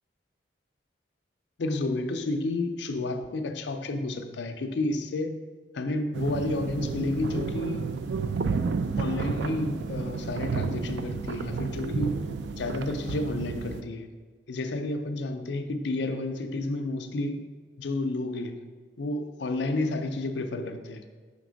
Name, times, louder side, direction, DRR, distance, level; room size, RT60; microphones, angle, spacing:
voice 1, 1.6-5.4 5.7-7.9 9.0-12.1 12.5-14.1 14.5-17.4 17.8-18.7 19.0-21.1, left 2 dB, 65° left, 0.5 m, -31 dB
sound 1, 6.1-13.8, right 5 dB, 65° right, 0.3 m, -31 dB
5.8 x 3.4 x 5.0 m
head